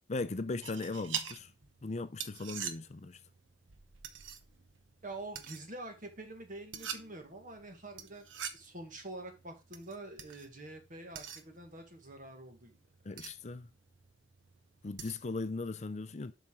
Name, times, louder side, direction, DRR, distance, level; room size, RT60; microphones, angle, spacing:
voice 1, 0.1-1.5 1.8-3.2 13.0-13.7 14.8-16.3, left 3 dB, 35° left, 0.5 m, -38 dB
sound 1, 0.6-15.4, right 8 dB, 80° right, 1.0 m, -46 dB
voice 2, 5.0-8.3 8.5-12.8, right 2 dB, 45° right, 1.8 m, -46 dB
7.4 x 5.8 x 3.7 m
head